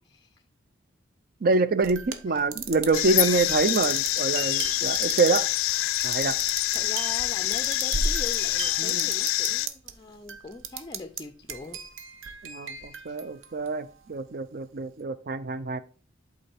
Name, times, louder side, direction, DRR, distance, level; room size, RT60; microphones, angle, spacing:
voice 1, 0.1-0.4 2.3-2.4 6.4-12.2 12.6-13.2, left 3 dB, 20° left, 0.4 m, -42 dB
voice 2, 1.4-5.5 6.0-6.4 8.8-9.1 12.4-15.8, right 3 dB, 50° right, 0.5 m, -26 dB
sound 1, 1.8-9.9 10.3-11.2 11.5-13.9, right 4 dB, 85° right, 0.8 m, -36 dB
sound 2, 2.9-9.7, left 16 dB, 90° left, 0.3 m, -26 dB
8.3 x 3.9 x 4.4 m
head